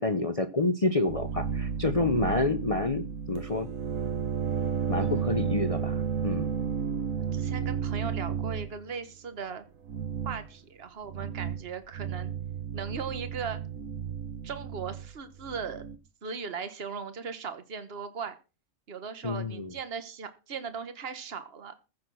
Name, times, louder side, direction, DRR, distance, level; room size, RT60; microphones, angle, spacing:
voice 1, 0.0-3.7 4.9-6.5 19.2-19.7, left 2 dB, 30° left, 10 dB, 0.7 m, -28 dB
sound 1, 1.1-8.8 9.8-10.5 11.1-11.7 11.9-16.0, right 7 dB, 65° right, 1.6 m, -32 dB
voice 2, 5.0-5.5 7.3-9.6 10.2-12.3 12.7-13.6 14.4-15.8 16.2-18.4 18.9-21.7, right 5 dB, 45° right, 10 dB, 1.6 m, -38 dB
15.0 x 6.5 x 6.2 m, 0.32 s
omnidirectional pair, 1.5 m